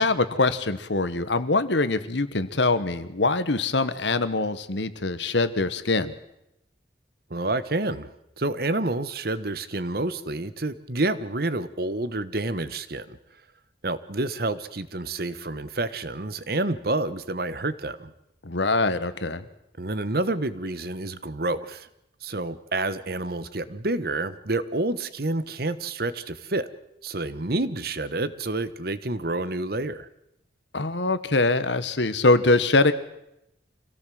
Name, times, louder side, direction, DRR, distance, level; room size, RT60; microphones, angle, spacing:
voice 1, 0.0-6.1 18.4-19.4 30.7-32.9, left 3 dB, 80° left, 13 dB, 1.5 m, -23 dB
voice 2, 7.3-8.1 8.4-13.2 13.8-18.1 19.8-21.9 22.2-26.7 27.0-30.1, right 2 dB, 55° right, 14 dB, 1.2 m, -28 dB
26.0 x 17.0 x 7.7 m, 0.83 s
head